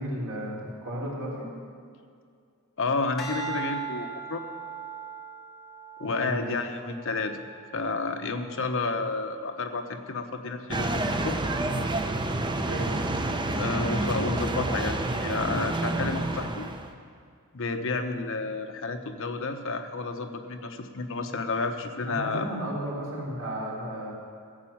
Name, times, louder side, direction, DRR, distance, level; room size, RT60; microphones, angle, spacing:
voice 1, 0.0-1.5 6.0-6.6 12.6-12.9 22.0-24.1, right 1 dB, 75° right, -5 dB, 3.8 m, -34 dB
voice 2, 2.8-4.4 6.0-7.4 7.7-11.4 13.6-16.7 17.5-22.5, left 3 dB, 65° left, 6 dB, 1.0 m, -31 dB
sound 1, 3.2-7.6 8.2-8.6, right 6 dB, ahead, 2.7 m, -39 dB
sound 2, 10.7-16.9, right 2 dB, 20° right, 0.7 m, -29 dB
15.0 x 7.9 x 7.2 m, 2.2 s
head